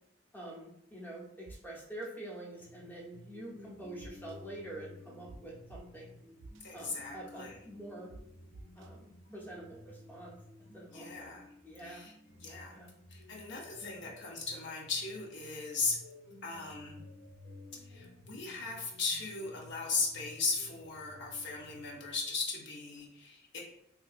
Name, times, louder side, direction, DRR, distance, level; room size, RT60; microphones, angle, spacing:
voice 1, 0.3-6.1 6.7-8.1 8.8-10.3 10.7-12.1 12.6-13.0 13.3-13.4 13.8-13.9, right 1 dB, 10° left, -5 dB, 0.7 m, -47 dB
sound 1, 1.5-1.6 2.0-2.1 4.0-4.4 5.3-5.4 5.7-5.8 6.4-6.6 8.1-8.2 8.5-8.9, right 2 dB, 70° right, 0.3 m, -49 dB
sound 2, 2.5-22.0, left 1 dB, 90° left, 1.4 m, -54 dB
voice 2, 6.6-7.6 10.9-11.4 11.8-12.1 12.4-12.8 13.1-16.0 16.4-17.0 17.9-23.6, left 4 dB, 60° left, -1 dB, 0.6 m, -37 dB
3.3 x 2.7 x 2.4 m, 0.78 s
head